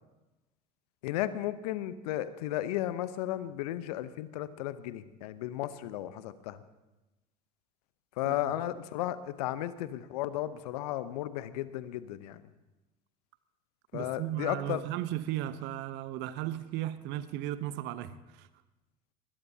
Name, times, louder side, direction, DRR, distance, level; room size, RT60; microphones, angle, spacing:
voice 1, 1.0-6.6 8.2-12.4 13.9-14.8, left 13 dB, 70° left, 0.9 m, -34 dB
voice 2, 13.9-18.5, right 13 dB, 60° right, 0.9 m, -36 dB
20.5 x 20.0 x 2.9 m
hypercardioid pair, 70°, 21 cm